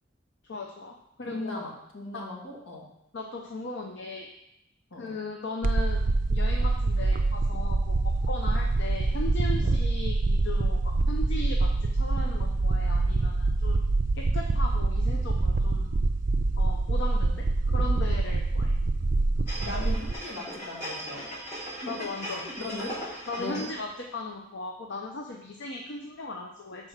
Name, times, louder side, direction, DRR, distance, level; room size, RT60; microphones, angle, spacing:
voice 1, 0.4-1.7 2.1-2.2 3.1-4.3 5.0-7.9 8.3-13.8 14.1-15.9 16.6-17.4 17.7-18.7 21.9-22.4 23.3-26.9, left 2 dB, 65° left, 1 dB, 0.7 m, -37 dB
voice 2, 1.2-2.9 4.9-5.2 8.4-8.6 9.6-9.8 19.6-21.3 21.8-22.9 23.4-23.7, left 2 dB, 80° left, -2 dB, 2.0 m, -38 dB
sound 1, 5.6-20.1, right 2 dB, 45° right, 0.4 m, -25 dB
sound 2, 19.5-23.9 24.3-24.4, right 1 dB, 50° left, 2.9 m, -38 dB
6.2 x 4.3 x 6.4 m, 0.83 s
head